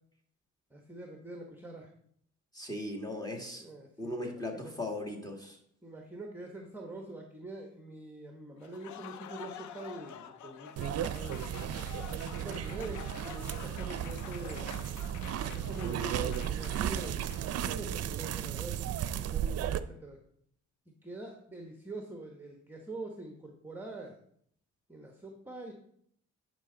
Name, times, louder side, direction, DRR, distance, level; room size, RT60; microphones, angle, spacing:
voice 1, 0.7-1.9 3.6-4.7 5.8-11.5 12.4-14.7 15.5-18.7 19.3-20.2 21.0-24.2 24.9-25.7, right 2 dB, 5° right, 2 dB, 1.1 m, -45 dB
voice 2, 2.5-3.7 4.0-5.6, left 1 dB, 15° left, 1 dB, 2.0 m, -38 dB
Applause, 8.6-18.0, left 8 dB, 70° left, 0.7 m, -47 dB
sound 1, 10.8-19.8, right 10 dB, 55° right, 0.5 m, -35 dB
10.5 x 5.2 x 3.8 m, 0.67 s
cardioid pair, 90°, 30 cm